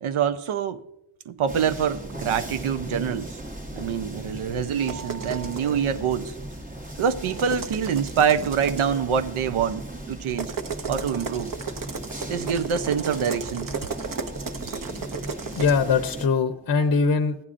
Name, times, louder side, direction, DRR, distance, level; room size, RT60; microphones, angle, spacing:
voice 1, 0.0-0.8 1.3-3.3 3.7-6.4 7.0-10.5 10.9-11.5 12.3-13.7, right 7 dB, 90° right, 0.6 m, -25 dB
sound 1, 1.5-16.3, right 1 dB, 15° right, 0.9 m, -37 dB
sound 2, 4.9-5.7 7.2-9.0 10.3-15.7, right 5 dB, 45° right, 0.6 m, -34 dB
voice 2, 15.4-17.4, left 5 dB, 45° left, 0.6 m, -22 dB
15.0 x 9.7 x 2.5 m
wide cardioid pair, 100°, 48 cm